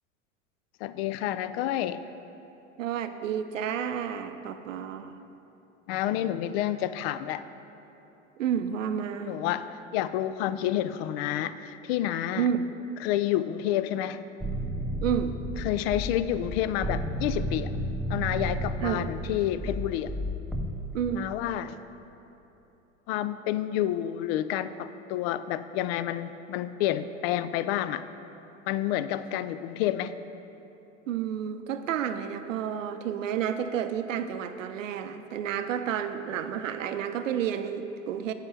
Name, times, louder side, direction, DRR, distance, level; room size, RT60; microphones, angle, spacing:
voice 1, 0.8-2.0 5.9-7.4 9.2-12.5 13.0-14.2 15.6-17.7 18.1-20.1 21.2-21.8 23.1-28.0 28.7-30.2, left 12 dB, 55° left, 14 dB, 0.4 m, -29 dB
voice 2, 2.8-5.2 8.4-9.4 12.4-12.7 15.0-15.4 18.8-19.1 20.9-21.3 31.1-38.3, right 8 dB, 80° right, 9 dB, 0.6 m, -30 dB
sound 1, 14.4-20.7, equal, ahead, 0.5 m, -32 dB
9.8 x 3.8 x 6.8 m, 3.0 s
hypercardioid pair, 85°, 38 cm